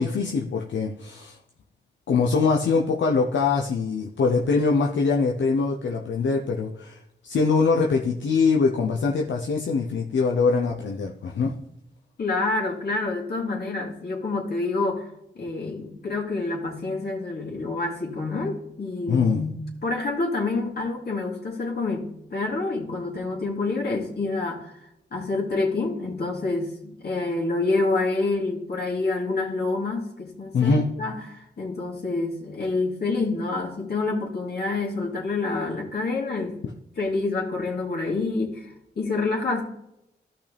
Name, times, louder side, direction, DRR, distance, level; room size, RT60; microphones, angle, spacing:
voice 1, 0.0-1.4 2.1-11.5 19.1-19.4 30.5-30.9, left 4 dB, 75° left, 0 dB, 0.8 m, -23 dB
voice 2, 12.2-36.6 37.0-39.6, left 3 dB, 55° left, -2 dB, 2.8 m, -27 dB
13.5 x 5.7 x 3.4 m, 0.81 s
cardioid pair, 60°, 19 cm